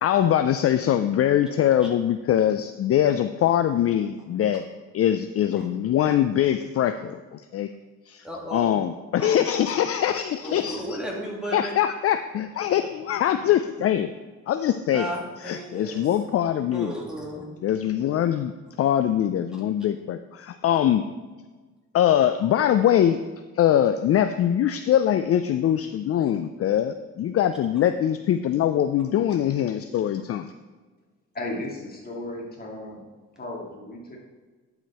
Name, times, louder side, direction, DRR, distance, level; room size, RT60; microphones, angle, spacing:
voice 1, 0.0-4.7 4.9-7.7 8.1-8.3 8.5-10.8 11.5-14.1 14.5-15.1 15.4-16.9 17.6-18.5 18.8-21.0 21.9-23.2 23.5-30.5, left 10 dB, 50° left, 10 dB, 0.4 m, -23 dB
voice 2, 8.2-8.7 9.2-9.3 10.4-11.7 14.9-16.1 16.7-17.4 26.2-26.3, equal, ahead, -3 dB, 2.6 m, -34 dB
voice 3, 31.3-33.0 33.4-34.2, left 1 dB, 30° left, -2 dB, 2.4 m, -35 dB
11.5 x 5.1 x 4.2 m, 1.3 s
cardioid pair, 90°, 30 cm